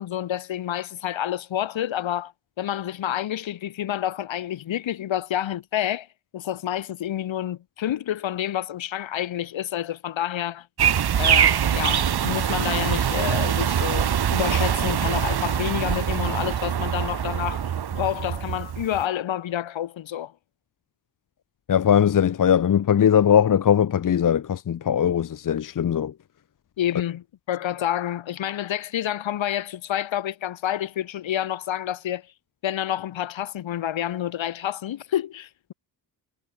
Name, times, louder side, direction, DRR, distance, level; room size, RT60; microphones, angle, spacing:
voice 1, 0.0-2.3 2.6-6.1 6.3-10.7 11.2-20.3 26.8-32.3 32.6-35.7, left 11 dB, 65° left, 2.5 m, -28 dB
sound 1, 10.8-19.0, right 9 dB, 50° right, 1.7 m, -23 dB
voice 2, 21.7-26.1, left 9 dB, 40° left, 0.9 m, -20 dB
hypercardioid pair, 45°, 50 cm